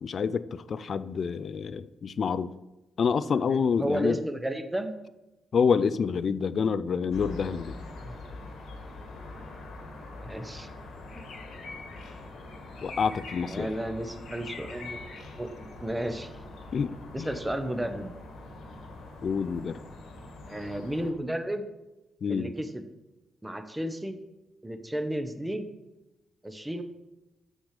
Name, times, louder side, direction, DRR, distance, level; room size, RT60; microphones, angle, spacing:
voice 1, 0.0-2.5 3.0-4.2 5.5-7.8 12.8-13.7 16.7-17.3 19.2-19.8 22.2-22.5, left 6 dB, 60° left, 16 dB, 0.4 m, -27 dB
voice 2, 3.3-4.9 8.0-8.2 10.2-10.7 11.2-11.3 13.4-15.0 15.4-16.3 17.1-18.1 20.5-21.6 22.3-22.8 23.4-24.2 24.6-25.7 26.4-26.8, right 1 dB, 15° right, 8 dB, 1.0 m, -33 dB
sound 1, 7.1-21.1, left 2 dB, 75° left, 1.5 m, -43 dB
6.6 x 6.1 x 5.0 m, 0.98 s
supercardioid pair, 45°, 0 cm